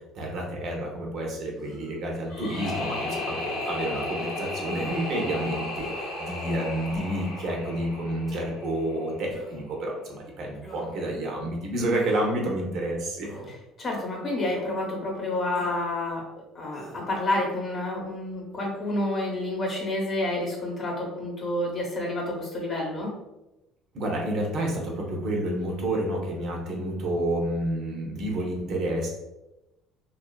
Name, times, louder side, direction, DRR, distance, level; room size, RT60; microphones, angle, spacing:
voice 1, 0.1-13.3 23.9-29.1, right 1 dB, 55° right, -1 dB, 0.6 m, -29 dB
sound 1, 1.6-2.0 2.6-2.9 3.6-3.8 4.6-5.1 5.8-6.1 6.9-7.3 8.3-8.4 9.3-9.7 10.6-11.1 11.9-12.3 13.2-13.5 14.4-14.7 15.5-15.8 16.7-17.1, right 1 dB, 5° left, 0.8 m, -44 dB
sound 2, 2.3-9.3, left 2 dB, 75° left, 0.6 m, -34 dB
voice 2, 13.8-16.2 16.5-23.1, left 1 dB, 40° left, -1 dB, 0.8 m, -29 dB
2.4 x 2.3 x 2.2 m, 0.96 s
cardioid pair, 115°, 0 cm